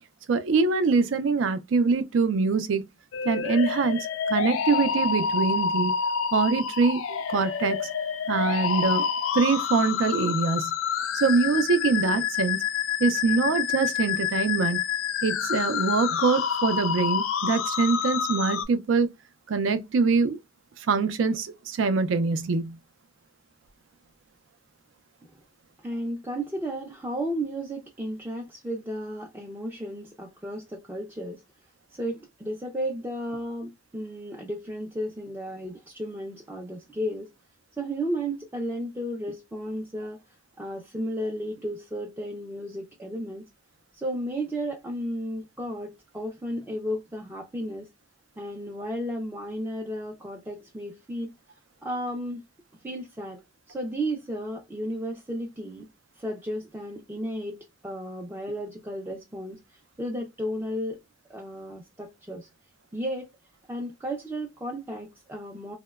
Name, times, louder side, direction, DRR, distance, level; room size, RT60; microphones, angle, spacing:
voice 1, 0.3-2.8 3.2-5.9 6.3-7.9 8.3-9.1 9.3-10.7 11.1-12.6 13.0-14.8 15.2-19.1 19.5-20.4 20.8-22.8, right 4 dB, 75° right, 0.4 m, -24 dB
sound 1, 3.1-18.6, left 7 dB, 90° left, 0.4 m, -28 dB
voice 2, 25.8-31.4 31.9-37.3 37.8-40.2 40.6-43.4 43.9-47.9 48.4-51.3 51.8-52.4 52.8-53.4 53.7-55.9 56.2-61.0 61.3-62.5 62.9-63.3 63.7-65.8, equal, 10° right, 0.4 m, -33 dB
2.8 x 2.1 x 2.2 m
head